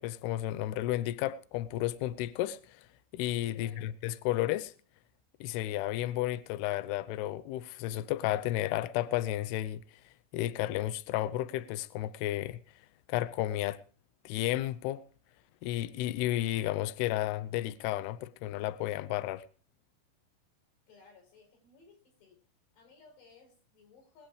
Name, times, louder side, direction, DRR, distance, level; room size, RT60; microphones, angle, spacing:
voice 1, 0.0-2.9 3.1-4.7 5.4-9.8 10.3-12.6 13.1-13.8 14.3-15.0 15.6-19.4, left 14 dB, 80° left, 2.3 m, -32 dB
voice 2, 3.5-3.9 20.9-22.4 22.7-24.3, left 4 dB, 60° left, 7.2 m, -59 dB
21.5 x 9.0 x 4.9 m
omnidirectional pair, 5.6 m